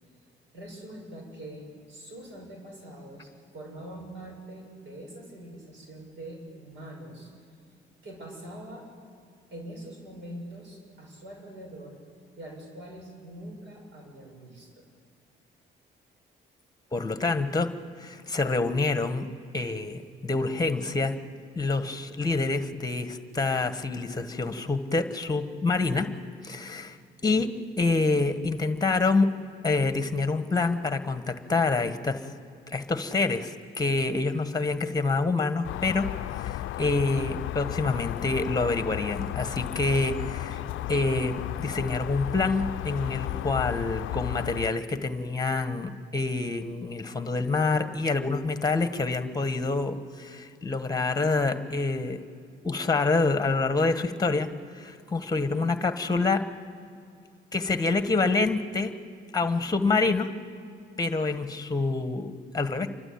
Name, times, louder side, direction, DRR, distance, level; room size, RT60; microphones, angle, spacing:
voice 1, 0.5-7.3 8.0-8.9 9.5-12.0 12.4-14.8, right 1 dB, 70° right, 0 dB, 6.6 m, -43 dB
voice 2, 16.9-19.3 19.5-21.2 21.5-26.1 26.4-27.0 27.2-29.3 29.6-32.3 32.7-36.1 36.4-40.6 40.9-52.2 52.6-54.5 54.7-56.5 57.5-58.9 59.3-60.3 61.0-62.9, left 3 dB, 20° left, 10 dB, 1.4 m, -27 dB
sound 1, 35.6-44.7, left 15 dB, 80° left, 0.5 m, -34 dB
29.0 x 12.5 x 8.7 m, 2.4 s
cardioid pair, 90°, 20 cm